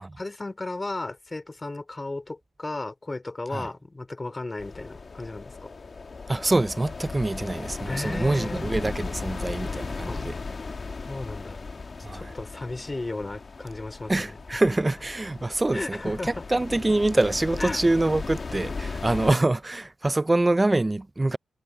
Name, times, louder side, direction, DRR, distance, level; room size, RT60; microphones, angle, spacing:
voice 1, 0.2-5.7 7.8-8.6 10.1-10.2 11.0-11.6 12.1-14.4 15.7-16.4 17.6-17.8, left 2 dB, 20° left, 4.4 m, -34 dB
sound 1, 4.6-19.4, left 4 dB, 35° left, 1.6 m, -36 dB
voice 2, 6.3-10.4 12.0-12.3 14.1-21.4, right 2 dB, 15° right, 0.4 m, -25 dB
wide cardioid pair, 125°, 0 cm